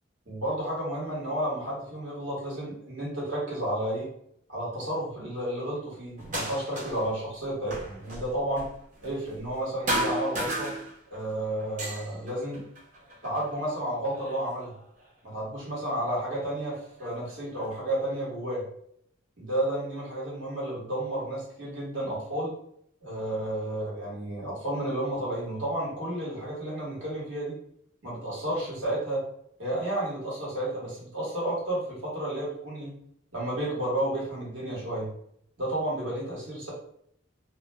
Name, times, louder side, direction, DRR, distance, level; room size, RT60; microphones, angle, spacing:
voice 1, 0.3-4.1 4.5-8.7 9.0-10.7 11.1-12.6 13.2-14.7 15.2-18.6 19.4-22.5 23.0-27.5 28.0-29.2 29.6-32.9 33.3-35.1 35.6-36.7, right 1 dB, 65° right, -5 dB, 1.2 m, -31 dB
sound 1, 6.2-7.1 7.4-9.6 9.9-11.3 11.6-13.5 14.1-15.0 16.0-16.1 16.7-17.7, right 1 dB, 40° right, 0.9 m, -34 dB
2.4 x 2.2 x 3.1 m, 0.70 s
head